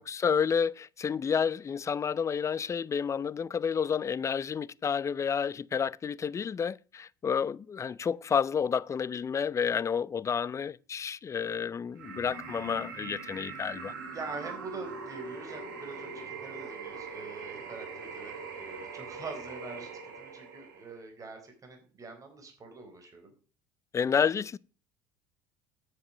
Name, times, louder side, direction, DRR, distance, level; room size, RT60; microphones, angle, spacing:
voice 1, 0.0-13.9 23.9-24.6, left 7 dB, 30° left, 0.5 m, -30 dB
sound 1, 12.0-21.0, right 4 dB, 75° right, 3.8 m, -42 dB
voice 2, 14.1-23.3 24.1-24.3, right 3 dB, 30° right, 4.3 m, -44 dB
10.0 x 7.8 x 6.1 m
hypercardioid pair, 65°, 11 cm